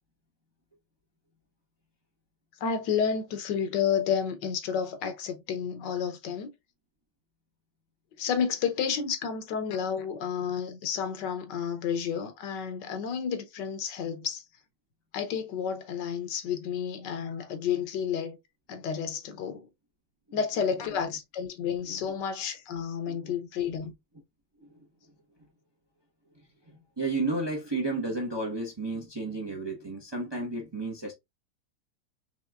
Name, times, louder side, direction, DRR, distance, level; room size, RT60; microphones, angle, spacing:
voice 1, 2.6-6.5 8.2-14.4 15.1-18.4 18.7-19.7 20.3-23.9, left 7 dB, 85° left, 1.5 m, -31 dB
voice 2, 26.7-31.1, right 2 dB, 20° right, 0.7 m, -33 dB
5.3 x 3.0 x 2.3 m
omnidirectional pair, 1.8 m